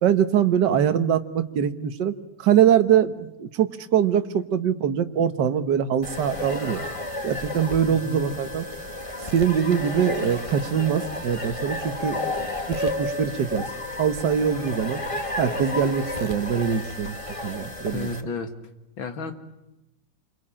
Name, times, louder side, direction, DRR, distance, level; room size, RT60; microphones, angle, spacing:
voice 1, 0.0-6.8 7.2-8.7 9.3-12.2 12.7-13.7 14.0-15.0 15.4-17.2 17.4-18.1, right 8 dB, 65° right, 10 dB, 1.8 m, -23 dB
sound 1, 6.0-18.2, left 2 dB, 15° left, 1.9 m, -32 dB
voice 2, 7.9-8.2 17.9-18.5 19.0-19.3, left 4 dB, 85° left, 7 dB, 2.7 m, -32 dB
29.0 x 23.0 x 8.7 m, 0.93 s
omnidirectional pair, 2.1 m